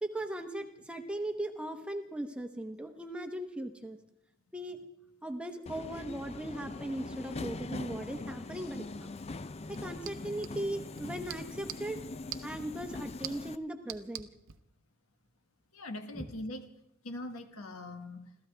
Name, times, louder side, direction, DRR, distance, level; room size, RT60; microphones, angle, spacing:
voice 1, 0.0-4.0 4.5-4.8 5.2-9.1 9.7-12.0 12.4-14.3 16.1-16.2, right 1 dB, 5° right, 5 dB, 0.9 m, -38 dB
Subway metro underground, 5.7-13.6, left 3 dB, 30° left, 0.5 m, -42 dB
sound 1, 9.6-14.6, right 11 dB, 65° right, 0.8 m, -47 dB
voice 2, 15.7-16.7 17.0-18.3, left 1 dB, 85° left, 7 dB, 1.4 m, -41 dB
29.0 x 14.0 x 3.4 m, 0.79 s
head